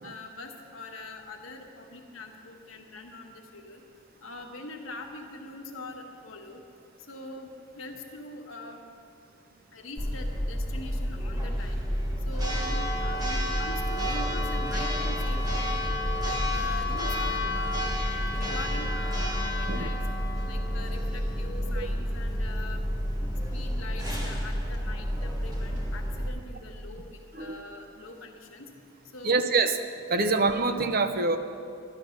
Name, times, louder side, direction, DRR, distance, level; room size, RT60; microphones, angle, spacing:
voice 1, 0.0-3.8 4.2-6.6 7.1-7.5 7.8-8.8 9.7-11.8 12.2-15.8 16.2-17.9 18.3-20.0 20.4-22.8 23.5-28.7 29.1-29.4 30.1-30.3, left 2 dB, 80° left, 2 dB, 1.4 m, -43 dB
Church bell, 10.0-26.3, equal, 20° right, 1.3 m, -29 dB
voice 2, 29.2-29.8 30.1-31.4, right 3 dB, 45° right, 9 dB, 0.7 m, -25 dB
12.5 x 11.0 x 6.5 m, 2.6 s
head